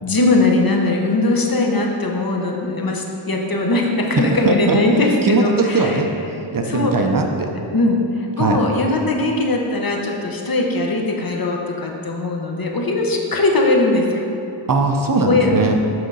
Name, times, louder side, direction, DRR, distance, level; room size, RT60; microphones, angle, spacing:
voice 1, 0.0-6.0 6.6-7.1 7.7-14.2 15.2-15.5, left 2 dB, 50° left, 0 dB, 0.9 m, -20 dB
voice 2, 4.2-6.1 6.5-7.5 8.4-8.6 14.7-15.8, right 3 dB, 45° right, 3 dB, 0.6 m, -19 dB
7.7 x 3.8 x 5.4 m, 2.6 s
wide cardioid pair, 100°, 46 cm